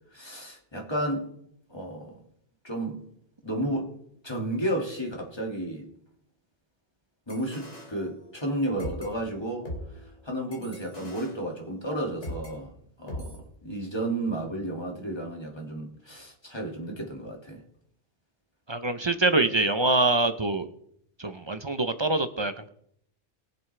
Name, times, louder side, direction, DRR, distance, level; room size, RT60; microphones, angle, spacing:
voice 1, 0.1-1.3 1.7-2.2 2.6-3.0 3.4-3.9 4.2-5.9 7.3-9.7 10.2-12.7 13.0-17.6, right 1 dB, 20° left, 0 dB, 2.2 m, -32 dB
sound 1, 7.3-8.5 8.8-12.5 13.1-13.4, left 1 dB, 85° left, 3.2 m, -41 dB
voice 2, 18.7-20.7 21.2-22.7, right 2 dB, 30° right, 10 dB, 0.6 m, -25 dB
22.0 x 7.3 x 3.3 m, 0.69 s
omnidirectional pair, 1.2 m